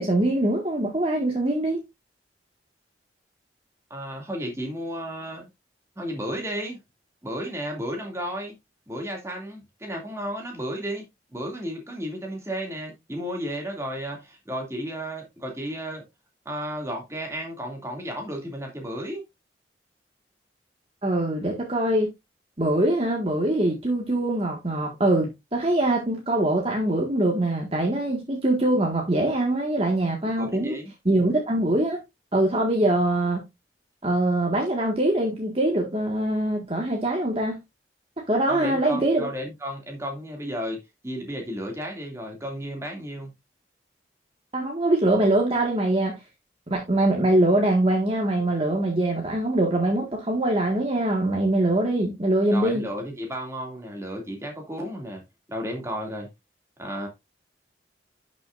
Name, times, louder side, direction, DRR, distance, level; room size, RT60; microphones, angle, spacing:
voice 1, 0.0-1.8 21.0-22.1 22.6-30.8 31.1-32.0 32.3-33.4 34.0-37.6 38.3-39.3 44.5-46.2 46.7-52.8, right 1 dB, 30° right, 1.7 m, -23 dB
voice 2, 3.9-5.4 6.0-6.8 7.2-8.5 8.9-11.0 11.3-16.1 16.4-19.2 30.4-30.9 38.5-40.8 41.0-43.3 52.5-55.2 55.5-56.3 56.8-57.1, equal, 15° right, 2.5 m, -33 dB
11.5 x 6.2 x 2.5 m
head